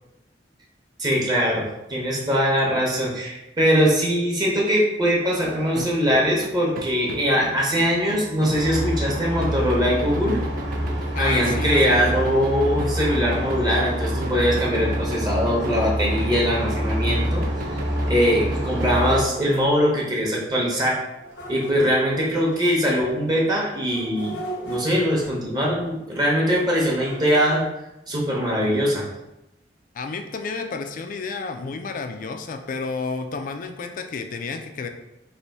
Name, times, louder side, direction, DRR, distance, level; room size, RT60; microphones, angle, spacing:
voice 1, 1.0-10.4 11.2-17.7 18.1-21.0 21.5-24.4 24.6-27.6 28.1-29.0, equal, 25° right, -3 dB, 0.8 m, -22 dB
sound 1, 5.3-18.9, right 2 dB, 50° right, 0.4 m, -36 dB
sound 2, 8.5-19.2, equal, 70° right, 1.0 m, -26 dB
voice 2, 11.1-12.1 29.9-34.9, left 4 dB, 50° left, 6 dB, 0.4 m, -31 dB
sound 3, 11.2-12.6 14.8-14.9 15.4-15.5 16.3-16.4 16.9-17.0 18.5-19.8 21.1-23.0 23.8-25.7 26.7-27.6, right 2 dB, 80° left, 1.0 m, -38 dB
3.3 x 2.6 x 4.0 m, 0.94 s
head